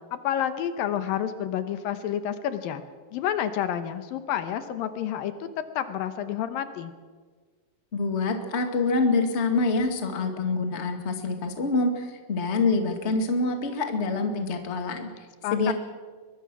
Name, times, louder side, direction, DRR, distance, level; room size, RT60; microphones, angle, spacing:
voice 1, 0.1-2.8 3.1-5.5 5.8-6.9 15.4-15.7, left 10 dB, 75° left, 10 dB, 2.8 m, -29 dB
voice 2, 7.9-15.1 15.5-15.7, left 3 dB, 25° left, 5 dB, 1.7 m, -26 dB
23.0 x 23.0 x 6.2 m, 1.5 s
omnidirectional pair, 4.2 m